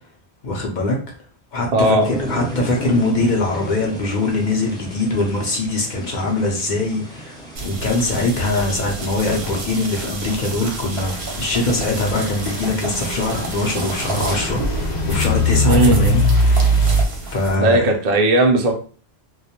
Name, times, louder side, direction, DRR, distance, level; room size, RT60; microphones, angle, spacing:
voice 1, 0.4-1.0 1.5-7.4 7.6-16.9 17.2-17.9, left 2 dB, 55° left, 0 dB, 0.6 m, -22 dB
voice 2, 1.7-2.1 15.6-16.0 17.6-18.7, right 2 dB, 50° right, 3 dB, 0.5 m, -16 dB
sound 1, 2.0-9.6, equal, 5° left, 0.4 m, -34 dB
sound 2, 7.6-17.6, right 3 dB, 70° right, 0.8 m, -30 dB
Truck / Idling, 10.9-17.0, left 1 dB, 85° left, 0.8 m, -21 dB
2.2 x 2.1 x 2.8 m, 0.41 s
omnidirectional pair, 1.1 m